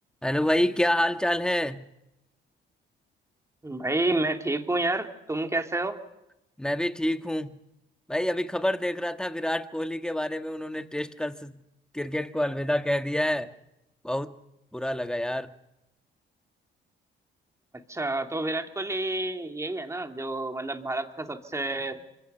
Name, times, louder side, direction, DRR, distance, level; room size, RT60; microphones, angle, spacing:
voice 1, 0.2-1.9 6.6-7.6 8.1-11.6 11.9-13.5 14.0-14.3 14.7-15.5, left 1 dB, 5° left, 7 dB, 1.7 m, -27 dB
voice 2, 3.6-6.0 17.9-22.0, right 2 dB, 15° right, 4 dB, 2.8 m, -29 dB
29.5 x 25.0 x 5.7 m, 0.89 s
cardioid pair, 90°, 20 cm